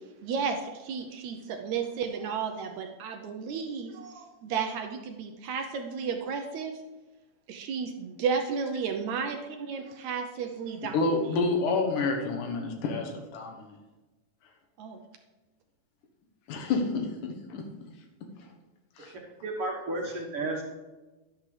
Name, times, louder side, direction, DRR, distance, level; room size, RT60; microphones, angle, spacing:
voice 1, 0.2-6.7 7.5-11.0 14.8-15.0, right 6 dB, 75° right, 5 dB, 1.9 m, -33 dB
voice 2, 10.9-13.8 16.5-17.6 19.0-19.1, left 3 dB, 90° left, 3 dB, 2.8 m, -29 dB
voice 3, 19.4-20.6, right 2 dB, 55° right, 0 dB, 2.0 m, -32 dB
11.5 x 11.0 x 3.3 m, 1.2 s
omnidirectional pair, 3.6 m